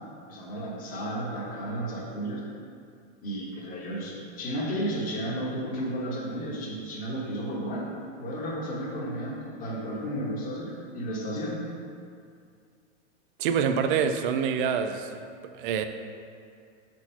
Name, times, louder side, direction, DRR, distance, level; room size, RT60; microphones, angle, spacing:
voice 1, 0.3-2.4 3.2-7.9 8.2-11.6, right 1 dB, 25° left, -5 dB, 1.2 m, -33 dB
voice 2, 13.4-15.2 15.5-15.9, right 7 dB, 45° right, 8 dB, 0.4 m, -26 dB
4.5 x 4.3 x 5.7 m, 2.3 s
supercardioid pair, 155°, 36 cm